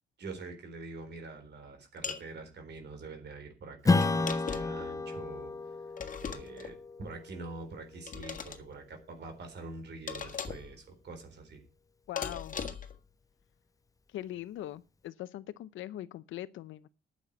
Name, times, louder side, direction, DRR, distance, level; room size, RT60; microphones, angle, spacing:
voice 1, 0.2-5.9 6.2-11.6, right 3 dB, 60° right, 3.9 m, -45 dB
sound 1, 2.0-2.3 4.0-4.8 6.0-6.7 8.1-8.6 10.1-10.7 12.2-13.0, left 6 dB, 40° left, 1.7 m, -39 dB
Strum, 3.8-8.8, left 3 dB, 15° left, 0.5 m, -32 dB
voice 2, 12.1-12.6 14.1-16.9, left 13 dB, 75° left, 0.6 m, -41 dB
9.3 x 7.4 x 8.0 m
cardioid pair, 90°, 20 cm